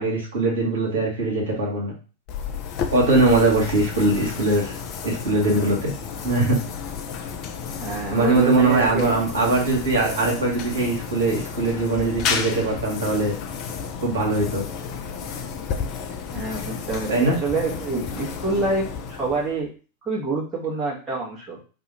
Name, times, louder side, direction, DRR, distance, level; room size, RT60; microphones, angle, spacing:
voice 1, 0.0-1.9 2.9-4.7 5.0-5.9 6.2-6.6 8.1-13.4 14.0-14.6 16.5-16.7 17.1-17.4, right 2 dB, 65° right, -2 dB, 1.3 m, -21 dB
sound 1, 2.3-19.7, left 6 dB, 40° left, 0.4 m, -32 dB
voice 2, 7.8-9.1 16.3-19.7 20.0-21.6, right 3 dB, 15° right, -5 dB, 1.1 m, -27 dB
2.7 x 2.4 x 4.0 m, 0.36 s
figure-of-eight pair, 90°, 0 cm